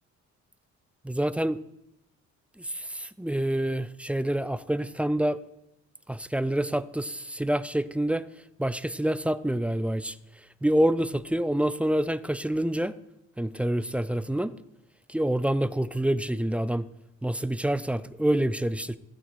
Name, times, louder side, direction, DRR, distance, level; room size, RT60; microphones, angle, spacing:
voice 1, 1.0-1.6 2.6-5.4 6.1-8.2 8.6-10.2 10.6-12.9 13.4-14.5 15.1-16.8 17.2-19.0, right 1 dB, 5° right, 15 dB, 0.3 m, -27 dB
15.5 x 8.5 x 3.1 m, 0.84 s
cardioid pair, 90°, 30 cm